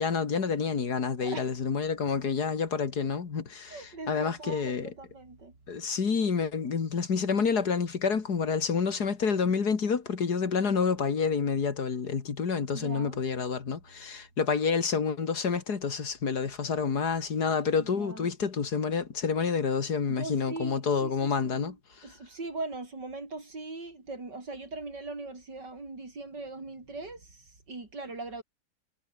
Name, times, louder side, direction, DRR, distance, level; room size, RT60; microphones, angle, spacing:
voice 1, 0.0-4.9 5.7-21.7, left 5 dB, 65° left, 2.6 m, -28 dB
voice 2, 1.2-1.5 3.7-5.6 12.7-13.2 17.8-18.3 20.1-21.8 22.0-28.4, right 3 dB, 80° right, 5.8 m, -40 dB
omnidirectional pair, 1.8 m